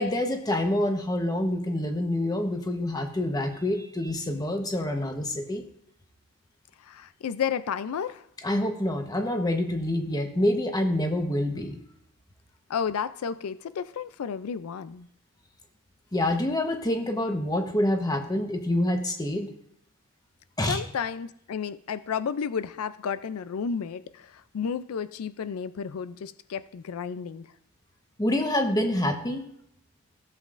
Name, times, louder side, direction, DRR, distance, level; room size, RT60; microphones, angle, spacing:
voice 1, 0.0-5.6 8.4-11.8 16.1-19.5 20.6-20.8 28.2-29.4, left 1 dB, 20° left, 4 dB, 1.0 m, -27 dB
voice 2, 6.8-8.2 12.7-15.1 20.7-27.5, left 7 dB, 85° left, 14 dB, 0.4 m, -32 dB
16.0 x 7.4 x 2.5 m, 0.74 s
head